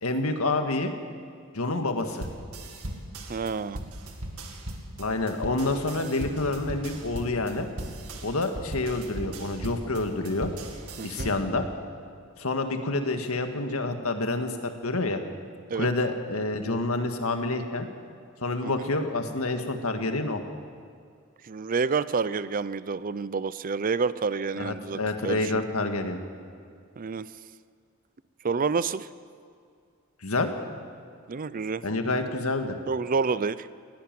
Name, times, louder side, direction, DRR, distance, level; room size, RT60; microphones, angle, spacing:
voice 1, 0.0-1.0 1.5-2.3 5.0-7.7 8.2-10.5 11.0-11.7 12.4-15.2 15.7-17.9 18.4-20.4 24.6-26.2 30.2-30.5 31.8-32.8, left 2 dB, 80° left, 6 dB, 1.8 m, -28 dB
sound 1, 2.1-11.6, right 1 dB, 90° right, 2.2 m, -38 dB
voice 2, 3.3-3.8 11.0-11.3 15.7-15.9 18.6-18.9 21.4-25.6 27.0-27.3 28.4-29.1 31.3-31.8 32.9-33.7, right 5 dB, 40° right, 16 dB, 0.5 m, -29 dB
20.0 x 17.0 x 7.6 m, 2.3 s
head